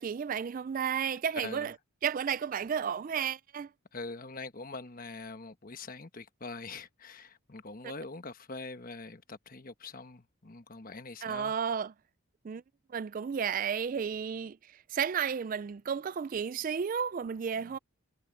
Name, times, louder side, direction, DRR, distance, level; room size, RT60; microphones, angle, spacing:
voice 1, 0.0-1.8 2.0-3.7 11.2-11.9 12.4-12.6 12.9-17.8, right 7 dB, 40° right, 0.3 m, -32 dB
voice 2, 1.4-1.7 3.9-11.5 17.5-17.8, left 3 dB, 40° left, 1.2 m, -44 dB
head